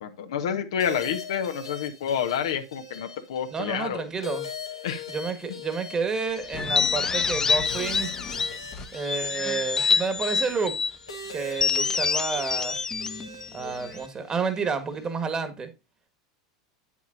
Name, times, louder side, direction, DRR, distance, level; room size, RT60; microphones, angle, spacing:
voice 1, 0.0-4.0 4.8-5.0, left 8 dB, 70° left, 1.1 m, -29 dB
sound 1, 0.8-15.3, left 3 dB, 90° left, 1.5 m, -42 dB
voice 2, 3.5-4.5 5.1-8.2 8.9-10.8 11.3-12.8 13.5-15.7, right 5 dB, 25° right, 1.6 m, -30 dB
sound 2, 6.5-9.2, left 5 dB, 40° left, 1.1 m, -40 dB
sound 3, 6.6-8.6 9.1-11.0 11.5-14.1, left 5 dB, 20° left, 0.4 m, -26 dB
8.3 x 7.4 x 2.6 m
hypercardioid pair, 85°, 3 cm